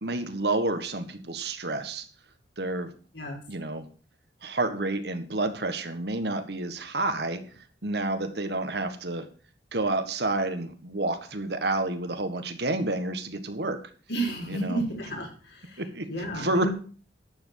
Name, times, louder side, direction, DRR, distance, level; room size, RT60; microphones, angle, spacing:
voice 1, 0.0-2.0 2.6-2.9 3.5-3.9 4.4-7.4 7.8-9.3 9.7-13.8 14.5-14.8 15.8-16.1 16.3-16.7, right 2 dB, 60° right, 8 dB, 1.6 m, -29 dB
voice 2, 14.1-15.8 16.1-16.7, right 2 dB, 65° left, 0 dB, 5.3 m, -32 dB
11.5 x 8.0 x 6.5 m, 0.40 s
head